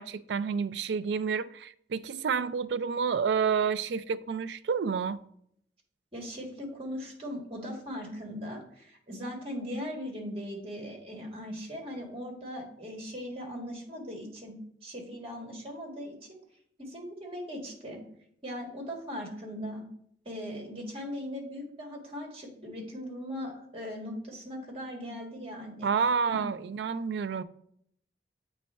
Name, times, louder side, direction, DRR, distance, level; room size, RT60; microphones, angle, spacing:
voice 1, 0.0-5.2 25.8-27.4, right 6 dB, 70° right, 0.3 m, -29 dB
voice 2, 6.1-14.5 14.8-16.1 16.8-18.0 18.4-19.8 20.2-25.9 26.3-26.4, equal, 30° right, 1.6 m, -39 dB
8.2 x 3.2 x 4.3 m
head